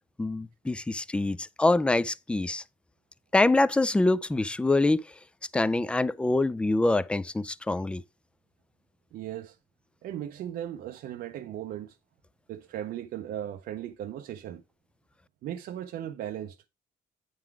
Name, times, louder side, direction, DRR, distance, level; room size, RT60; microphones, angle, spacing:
voice 1, 0.2-2.6 3.3-5.0 5.5-8.0, left 2 dB, 5° left, 0.3 m, -25 dB
voice 2, 9.1-9.6 10.0-12.0 12.5-14.6 15.4-16.6, right 11 dB, 65° right, 0.6 m, -37 dB
8.9 x 3.9 x 4.7 m
cardioid pair, 110°, 17 cm